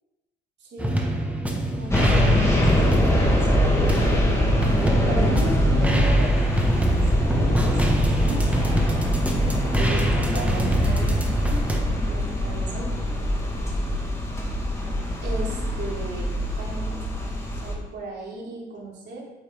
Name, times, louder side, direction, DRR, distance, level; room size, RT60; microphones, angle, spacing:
voice 1, 0.6-1.0 1.6-4.2 4.5-6.3 7.1-8.6 9.4-13.0 15.2-19.2, right 2 dB, 60° right, -4 dB, 3.4 m, -36 dB
sound 1, 0.8-11.8, right 1 dB, 5° right, 1.6 m, -25 dB
sound 2, 1.9-17.8, equal, 15° left, 2.3 m, -23 dB
8.7 x 8.5 x 4.1 m, 1.1 s
cardioid pair, 90°, 20 cm